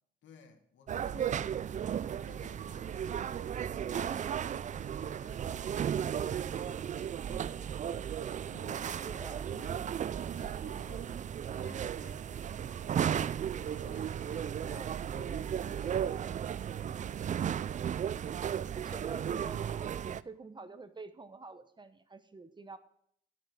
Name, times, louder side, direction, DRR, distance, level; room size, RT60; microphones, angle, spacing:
voice 1, 0.2-1.8 2.0-7.8 8.5-12.6 13.6-17.1, left 6 dB, 70° left, 1.7 m, -56 dB
sound 1, 0.9-20.2, right 9 dB, 40° right, 0.4 m, -35 dB
voice 2, 7.2-7.5 8.9-9.5 14.6-14.9 18.7-22.8, right 3 dB, 25° right, 0.9 m, -47 dB
13.0 x 5.8 x 6.2 m
cardioid pair, 90°, 20 cm